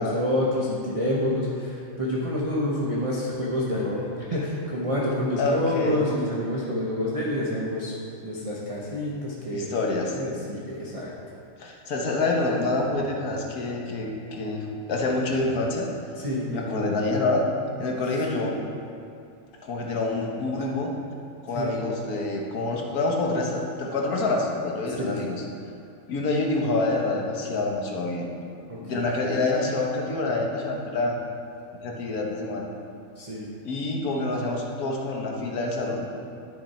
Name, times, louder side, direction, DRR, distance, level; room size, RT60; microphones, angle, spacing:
voice 1, 0.0-7.9 8.2-9.8 10.1-11.1 16.1-16.6 21.5-21.7 25.0-25.1 28.7-29.1 33.2-33.5, left 1 dB, 25° right, -6 dB, 1.0 m, -28 dB
voice 2, 5.4-6.0 9.5-10.2 11.6-15.9 16.5-17.5 17.8-18.6 19.6-20.9 21.4-25.4 26.1-28.3 28.8-31.2 31.8-32.7 33.6-36.1, left 2 dB, 80° left, 0 dB, 1.6 m, -27 dB
11.0 x 6.5 x 4.3 m, 2.5 s
omnidirectional pair, 1.6 m